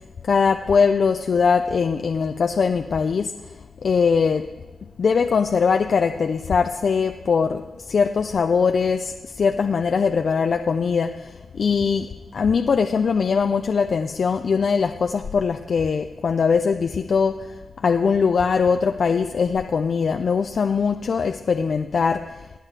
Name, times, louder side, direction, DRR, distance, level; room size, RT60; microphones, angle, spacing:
voice 1, 0.2-4.5 5.0-12.1 12.3-22.5, left 5 dB, 70° left, 6 dB, 0.5 m, -21 dB
24.0 x 9.1 x 3.4 m, 1.2 s
cardioid pair, 65°, 0 cm